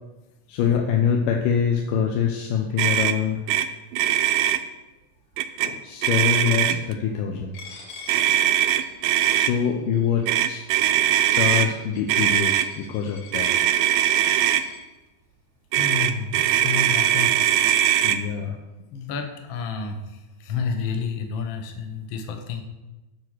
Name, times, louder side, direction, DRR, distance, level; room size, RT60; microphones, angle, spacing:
voice 1, 0.5-3.4 5.7-7.6 9.3-10.6 11.3-13.5 18.0-18.6, left 7 dB, 85° left, 2 dB, 2.4 m, -24 dB
Motor vehicle (road), 2.8-3.2 3.5-3.7 3.9-4.6 5.4-5.7 6.0-6.9 8.1-9.5 10.3-11.7 12.1-12.7 13.3-14.6 15.7-18.2, right 12 dB, 85° right, 2.2 m, -21 dB
Coin (dropping), 7.5-14.8, left 5 dB, 50° left, 2.3 m, -46 dB
voice 2, 15.7-17.3 18.9-20.0 20.4-22.6, left 5 dB, 70° left, 4 dB, 1.2 m, -30 dB
8.7 x 6.1 x 6.4 m, 1.1 s
omnidirectional pair, 3.7 m